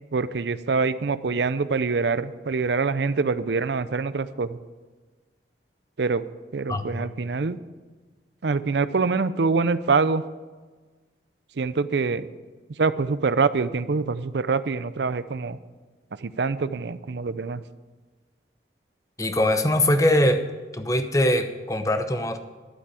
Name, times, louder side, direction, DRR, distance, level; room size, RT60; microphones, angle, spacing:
voice 1, 0.1-4.6 6.0-6.2 6.5-7.6 8.4-10.2 11.6-12.3 12.8-15.6 16.2-17.6, right 4 dB, 75° right, 15 dB, 0.5 m, -25 dB
voice 2, 6.7-7.1 19.2-20.4 20.7-22.4, left 1 dB, 20° left, 8 dB, 0.8 m, -22 dB
11.5 x 8.3 x 7.5 m, 1.4 s
head